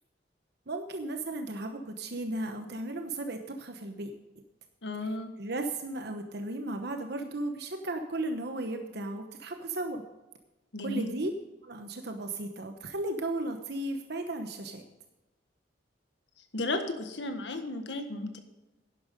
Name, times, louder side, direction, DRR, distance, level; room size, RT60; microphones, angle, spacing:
voice 1, 0.7-4.1 5.0-5.1 5.4-10.0 10.8-11.3 11.6-14.8, right 2 dB, 65° right, 6 dB, 1.0 m, -35 dB
voice 2, 4.8-5.3 10.7-11.1 16.5-18.4, left 2 dB, 70° left, 7 dB, 1.6 m, -34 dB
11.5 x 10.5 x 5.2 m, 1.1 s
head